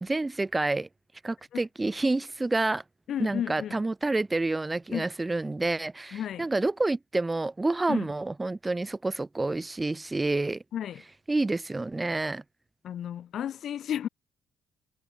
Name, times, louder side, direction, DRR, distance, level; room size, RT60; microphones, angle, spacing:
voice 1, 0.0-0.9 1.2-2.8 3.2-10.6 11.3-12.4, right 2 dB, 20° right, 0.7 m, -28 dB
voice 2, 3.1-3.8 4.9-5.0 6.1-6.5 7.9-8.1 10.7-11.0 12.8-14.1, left 10 dB, 65° left, 3.8 m, -33 dB
cardioid pair, 90°, 0 cm